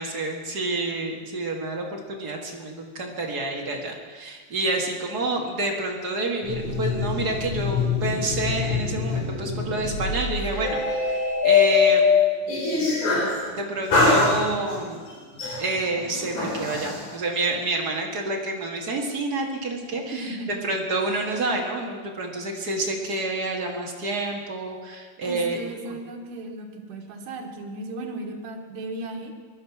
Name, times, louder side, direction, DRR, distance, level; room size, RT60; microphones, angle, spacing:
voice 1, 0.0-10.8 11.0-12.0 13.5-15.0 15.6-20.4 20.6-25.6, right 2 dB, 35° right, 0 dB, 1.8 m, -28 dB
sound 1, 6.4-13.4 13.9-14.8 15.4-17.0, left 4 dB, 60° left, 5.3 m, -23 dB
voice 2, 20.1-20.6 25.2-29.3, right 2 dB, 75° right, 1 dB, 3.1 m, -35 dB
20.0 x 12.0 x 6.0 m, 1.5 s
omnidirectional pair, 3.8 m